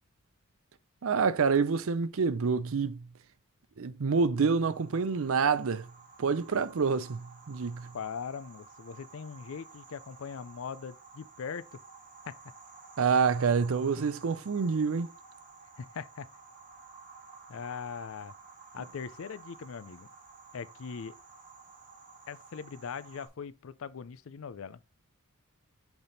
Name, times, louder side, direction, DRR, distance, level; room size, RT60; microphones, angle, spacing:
voice 1, 1.0-3.1 3.8-5.9 6.2-7.9 13.0-15.1, right 5 dB, 65° right, 0.5 m, -27 dB
sound 1, 4.3-23.3, right 4 dB, 40° right, 1.6 m, -53 dB
voice 2, 7.9-11.8 12.3-12.4 15.8-16.3 17.5-18.3 18.7-20.1 20.5-21.2 22.3-24.8, left 6 dB, 65° left, 0.4 m, -40 dB
7.9 x 3.5 x 4.0 m
head